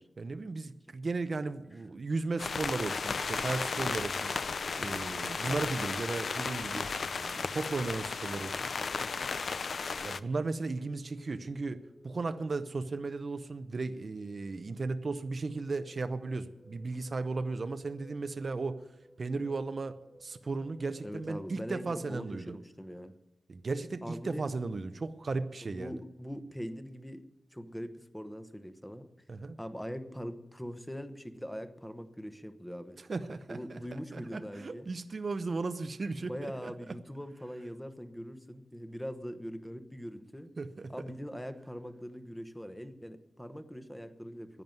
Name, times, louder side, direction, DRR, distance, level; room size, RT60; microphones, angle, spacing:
voice 1, 0.2-4.3 4.8-6.9 7.2-8.7 10.0-18.9 19.2-22.6 23.5-26.0 29.3-29.6 33.0-33.8 34.1-36.7 40.6-40.9, right 3 dB, 45° right, 10 dB, 0.6 m, -36 dB
sound 1, 2.4-10.2, left 5 dB, 60° left, 0.5 m, -34 dB
sound 2, 4.1-22.0, equal, 30° left, 2.9 m, -60 dB
voice 2, 21.0-23.2 24.0-24.5 25.7-27.2 27.5-29.1 29.6-33.0 33.5-34.9 36.2-40.5 40.9-44.6, equal, 5° left, 9 dB, 1.0 m, -42 dB
11.0 x 9.4 x 9.0 m, 0.92 s
wide cardioid pair, 115°, 0 cm